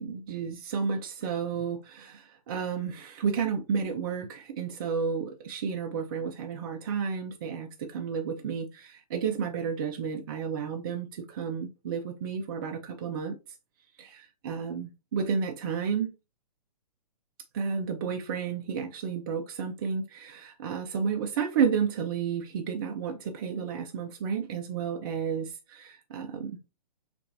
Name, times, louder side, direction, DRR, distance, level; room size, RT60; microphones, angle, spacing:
voice 1, 0.0-13.3 14.0-16.1 17.5-26.6, right 6 dB, 35° right, 0.6 m, -31 dB
6.5 x 2.6 x 2.6 m
figure-of-eight pair, 125°, 21 cm